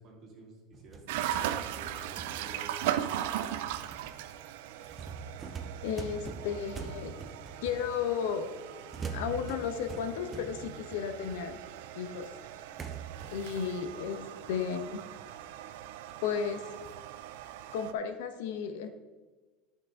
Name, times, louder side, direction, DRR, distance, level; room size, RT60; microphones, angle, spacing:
voice 1, 0.0-3.4, right 2 dB, 35° right, -2 dB, 2.7 m, -51 dB
sound 1, 0.7-8.3 8.9-11.9 12.2-12.3 12.8-15.7 16.1-16.2 16.8-17.1, right 5 dB, 15° right, 0.7 m, -44 dB
sound 2, 1.1-17.9, right 11 dB, 80° right, 0.5 m, -39 dB
voice 2, 5.8-7.1 7.6-8.5 9.1-11.6 11.9-12.3 13.3-15.0 16.2-16.7 17.7-18.9, left 7 dB, 90° left, 8 dB, 0.9 m, -34 dB
11.5 x 6.1 x 3.7 m, 1.3 s
cardioid pair, 165°, 0 cm